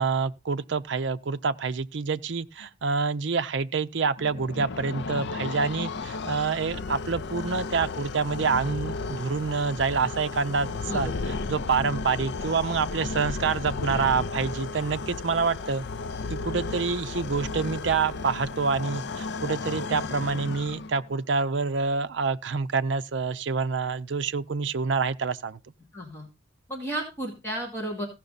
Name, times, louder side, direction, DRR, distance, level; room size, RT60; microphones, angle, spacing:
voice 1, 0.0-15.8 16.3-25.6, right 5 dB, 65° right, 0.6 m, -27 dB
sound 1, 4.2-21.2, left 4 dB, 60° left, 0.5 m, -34 dB
voice 2, 10.9-11.3 25.9-26.3 26.7-28.1, right 1 dB, 15° left, 2.4 m, -33 dB
16.0 x 5.9 x 4.1 m
head